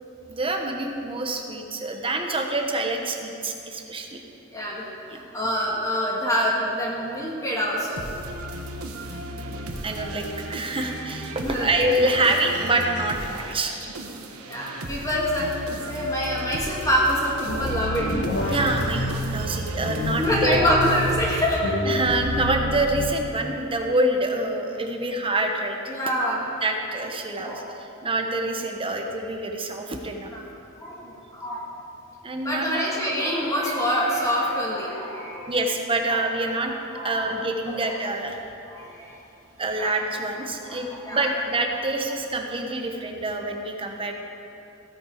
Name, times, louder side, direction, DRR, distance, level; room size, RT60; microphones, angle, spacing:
voice 1, 0.3-4.2 5.1-5.2 9.3-13.8 18.5-20.8 21.8-25.9 26.6-30.3 32.2-32.8 35.5-36.7 37.0-38.4 39.6-44.1, right 2 dB, 25° right, 3 dB, 1.0 m, -26 dB
voice 2, 4.5-4.8 5.1-8.0 11.3-11.8 14.5-15.5 15.9-18.1 20.2-21.7 25.9-26.5 27.4-27.6 30.3-30.4 30.8-31.7 32.4-35.6 36.1-36.2 36.6-37.3 37.7-37.8 38.7-39.1 39.7-39.9 40.6-41.3, equal, 15° left, -5 dB, 2.0 m, -26 dB
sound 1, 8.0-22.2, right 1 dB, 75° right, 1.2 m, -35 dB
sound 2, 17.5-19.4 19.8-21.2 21.6-23.2, left 1 dB, 80° left, 2.1 m, -28 dB
16.0 x 8.0 x 5.0 m, 2.9 s
head